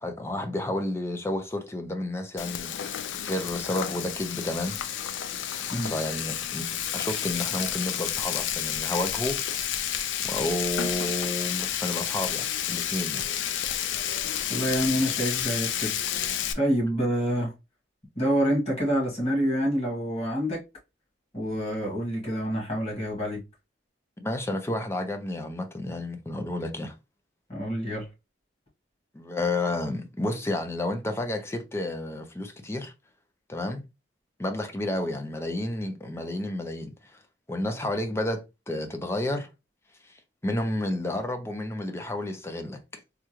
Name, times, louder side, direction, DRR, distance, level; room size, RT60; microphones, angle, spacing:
voice 1, 0.0-2.8 3.1-4.8 5.8-9.6 10.2-13.3 24.2-26.9 29.1-32.9 33.5-33.8 34.4-37.2 37.5-39.5 40.1-40.2 40.4-43.0, left 1 dB, 15° left, 0.5 m, -31 dB
Frying (food), 2.4-16.5, left 10 dB, 75° left, 0.4 m, -30 dB
voice 2, 14.5-15.9 16.5-17.5 18.1-20.6 21.3-23.4 27.5-28.1, equal, 35° left, 1.8 m, -27 dB
3.6 x 2.2 x 3.0 m
head